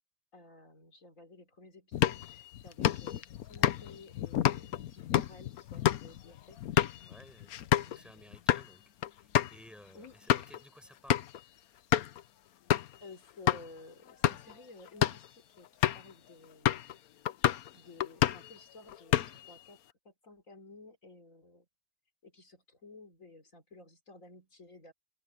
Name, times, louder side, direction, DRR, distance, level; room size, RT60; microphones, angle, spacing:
voice 1, 0.3-6.6 7.0-7.2 7.7-8.4 9.9-10.2 12.9-15.7 15.9-17.0 17.7-21.7 22.2-24.9, left 2 dB, 60° left, 3.9 m, -54 dB
sound 1, 1.9-8.0 8.3-8.7 9.0-9.1 9.3-9.6 10.0-10.6 11.1-11.4 11.9-12.2 12.7-13.0 13.5-13.6 14.1-14.5 14.9-15.3 15.8-16.1 16.7-16.9 17.3-17.7 18.0-18.5 18.9-19.5, left 12 dB, 85° left, 1.2 m, -29 dB
voice 2, 7.0-7.5 7.9-8.8 9.5-11.2, equal, ahead, 4.6 m, -55 dB
open air
omnidirectional pair, 1.5 m